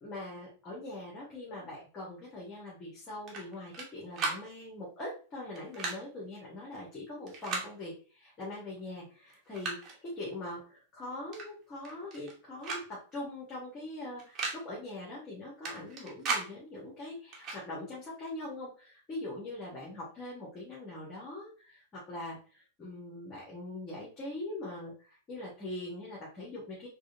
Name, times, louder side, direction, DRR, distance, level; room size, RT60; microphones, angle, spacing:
voice 1, 0.0-26.9, left 2 dB, 30° left, -5 dB, 1.6 m, -42 dB
sound 1, 3.3-3.9 4.1-4.4 5.6-6.0 7.3-7.7 8.8-8.9 9.3-10.0 11.3-11.5 11.8-12.3 12.6-12.9 13.1-13.2 14.2-14.6 15.7-16.5 17.3-17.6, right 4 dB, 35° right, 1.3 m, -36 dB
4.7 x 2.5 x 2.7 m, 0.39 s
hypercardioid pair, 100°, 0 cm